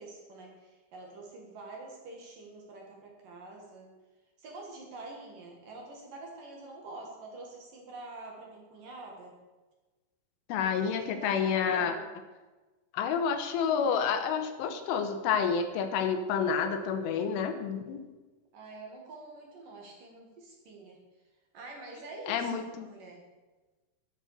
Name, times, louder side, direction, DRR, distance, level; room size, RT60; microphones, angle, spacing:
voice 1, 0.0-3.9 4.4-9.3 10.5-12.1 18.5-21.0 21.5-23.2, right 2 dB, 50° right, 0 dB, 3.1 m, -46 dB
voice 2, 10.5-11.9 12.9-18.0 22.3-22.9, left 6 dB, 85° left, 8 dB, 3.5 m, -29 dB
12.5 x 10.5 x 6.8 m, 1.2 s
omnidirectional pair, 5.7 m